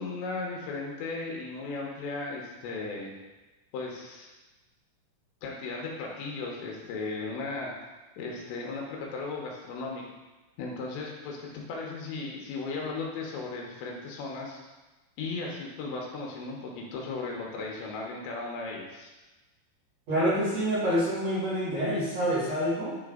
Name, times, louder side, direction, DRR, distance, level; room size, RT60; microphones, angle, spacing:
voice 1, 0.0-3.1 3.7-4.3 5.4-7.7 8.2-10.0 10.6-14.6 15.2-19.1, left 3 dB, 85° left, -1 dB, 3.4 m, -36 dB
voice 2, 20.1-23.0, equal, 45° right, -11 dB, 2.7 m, -27 dB
10.0 x 3.5 x 3.8 m, 1.1 s
omnidirectional pair, 5.2 m